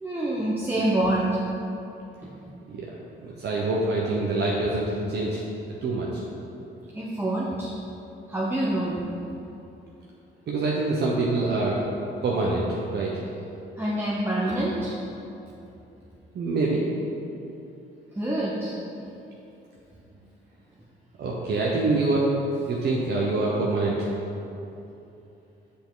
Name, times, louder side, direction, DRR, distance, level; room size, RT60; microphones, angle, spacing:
voice 1, 0.0-1.4 2.2-2.3 6.9-7.7 8.3-9.0 13.8-14.9 18.2-18.8, right 1 dB, 10° right, -6 dB, 0.8 m, -26 dB
voice 2, 3.2-5.4 5.8-6.2 10.5-11.8 12.2-13.1 16.3-16.8 21.2-22.3 22.6-24.1, right 2 dB, 55° right, -4 dB, 0.9 m, -25 dB
6.9 x 5.2 x 3.9 m, 2.8 s
cardioid pair, 90°, 20 cm